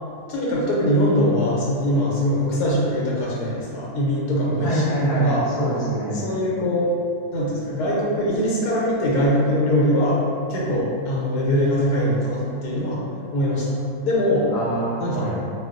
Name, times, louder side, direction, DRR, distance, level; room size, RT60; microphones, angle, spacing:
voice 1, 0.3-4.9 5.1-5.4 6.1-6.9 7.3-10.2 10.5-13.0 13.3-14.5 15.0-15.3, equal, 90° left, -5 dB, 1.1 m, -22 dB
voice 2, 4.6-6.2 14.5-15.5, equal, 40° left, -11 dB, 0.9 m, -25 dB
2.4 x 2.3 x 2.4 m, 2.5 s
omnidirectional pair, 1.6 m